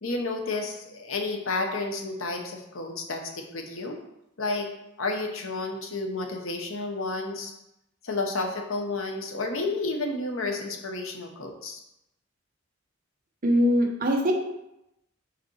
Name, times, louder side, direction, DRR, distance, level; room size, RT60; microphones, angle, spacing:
voice 1, 0.0-4.0 4.4-4.7 5.0-7.5 8.0-11.8, left 3 dB, 70° left, 2 dB, 1.0 m, -31 dB
voice 2, 13.4-14.3, equal, 40° right, 1 dB, 1.0 m, -22 dB
5.2 x 4.2 x 4.6 m, 0.85 s
head